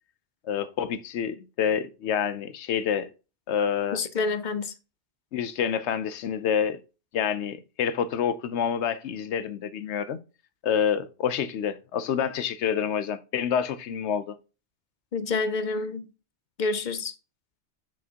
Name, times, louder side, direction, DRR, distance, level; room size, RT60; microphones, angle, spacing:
voice 1, 0.4-3.1 3.5-4.0 5.3-6.8 7.1-10.2 10.6-14.4, left 8 dB, 80° left, 0.9 m, -27 dB
voice 2, 3.9-4.7 15.1-16.1 16.6-17.1, left 3 dB, 50° left, 0.7 m, -28 dB
7.3 x 6.0 x 2.8 m
omnidirectional pair, 1.1 m